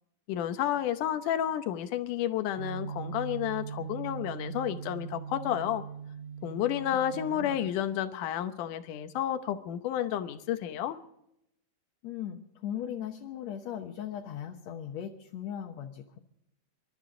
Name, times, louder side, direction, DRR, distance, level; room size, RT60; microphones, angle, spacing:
voice 1, 0.3-5.8 6.4-11.0, left 11 dB, 90° left, 9 dB, 2.5 m, -31 dB
sound 1, 2.6-7.7, right 7 dB, 70° right, 2.1 m, -40 dB
voice 2, 7.1-7.6 12.0-16.2, left 9 dB, 65° left, 2 dB, 2.2 m, -38 dB
27.0 x 13.0 x 3.8 m, 0.78 s
omnidirectional pair, 3.5 m